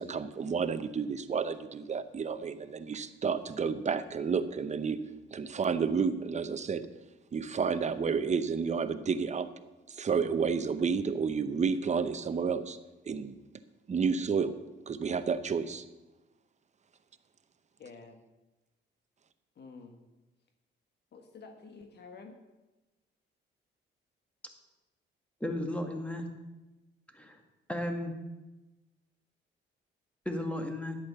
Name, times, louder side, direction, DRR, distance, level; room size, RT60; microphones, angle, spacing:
voice 1, 0.0-5.0 5.3-6.9 7.3-9.5 9.9-12.8 13.1-13.4 13.9-14.5 14.9-15.8, right 5 dB, 35° right, 11 dB, 0.9 m, -30 dB
voice 2, 17.8-18.2 19.6-20.0 21.1-22.4, left 4 dB, 55° left, 5 dB, 1.5 m, -49 dB
voice 3, 25.4-26.3 27.1-27.4 27.7-28.1 30.3-31.0, left 1 dB, 5° left, 4 dB, 2.0 m, -34 dB
11.0 x 8.5 x 6.8 m, 1.1 s
cardioid pair, 90°, 20 cm